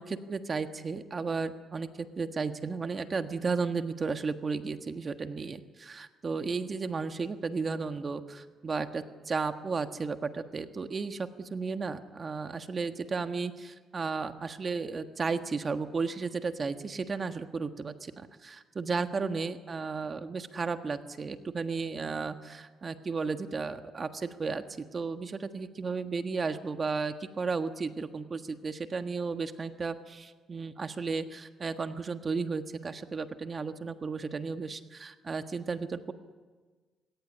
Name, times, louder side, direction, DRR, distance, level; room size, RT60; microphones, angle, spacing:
voice 1, 0.0-24.6 24.9-36.1, right 4 dB, 35° right, 8 dB, 1.4 m, -34 dB
21.0 x 17.5 x 9.9 m, 1.4 s
cardioid pair, 90°, 0 cm